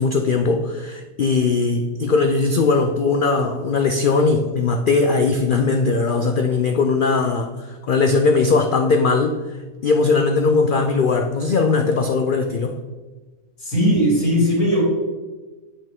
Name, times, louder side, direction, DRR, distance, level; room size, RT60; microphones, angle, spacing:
voice 1, 0.0-9.4 9.8-12.8, left 4 dB, 75° left, 5 dB, 0.4 m, -19 dB
voice 2, 13.6-14.8, equal, 60° left, -7 dB, 3.1 m, -18 dB
8.2 x 5.7 x 3.5 m, 1.3 s
omnidirectional pair, 1.5 m